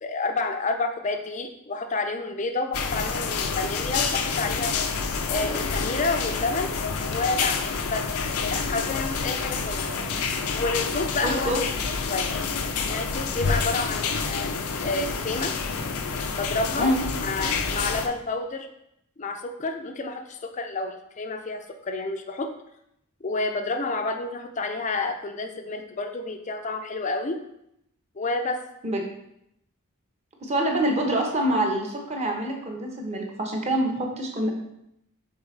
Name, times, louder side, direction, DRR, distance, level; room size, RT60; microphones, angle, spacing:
voice 1, 0.0-4.7 5.3-6.7 7.0-8.1 8.4-9.9 10.5-11.5 12.1-12.4 12.8-14.5 14.8-15.5 16.4-17.0 17.2-18.7 19.2-22.5 23.2-27.4 28.2-28.6, left 3 dB, 35° left, 5 dB, 0.4 m, -29 dB
sound 1, 2.7-18.1, left 5 dB, 90° left, 0.6 m, -28 dB
voice 2, 11.2-11.6 16.8-17.0 28.8-29.0 30.4-34.5, right 1 dB, 30° right, 1 dB, 1.0 m, -26 dB
7.0 x 4.1 x 3.2 m, 0.77 s
head